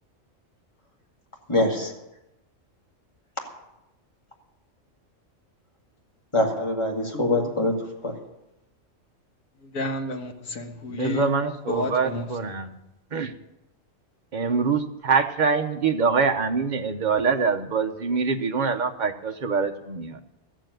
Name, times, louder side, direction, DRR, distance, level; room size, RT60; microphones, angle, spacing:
voice 1, 1.5-1.9 3.4-3.5 6.3-8.2, left 1 dB, 20° left, 0 dB, 2.3 m, -24 dB
voice 2, 9.7-11.3 11.7-12.3, left 2 dB, 85° left, 4 dB, 1.8 m, -31 dB
voice 3, 10.9-12.7 13.1-13.3 14.3-20.1, right 5 dB, 40° right, 6 dB, 1.0 m, -24 dB
13.5 x 7.5 x 9.2 m, 0.92 s
omnidirectional pair, 1.4 m